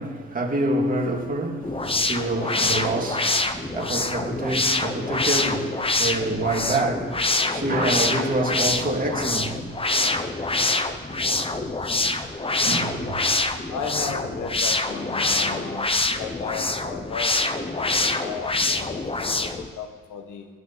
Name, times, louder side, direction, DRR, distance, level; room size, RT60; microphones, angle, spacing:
voice 1, 0.0-9.6 10.1-10.2 10.9-11.0 11.3-11.5 12.0-12.3 12.6-13.4, right 2 dB, 30° right, 2.5 m, -27 dB
sound 1, 1.6-19.7, left 2 dB, 20° left, 1.0 m, -25 dB
voice 2, 13.7-20.4, left 6 dB, 80° left, 1.8 m, -35 dB
20.0 x 11.5 x 4.2 m
cardioid pair, 90°, 30 cm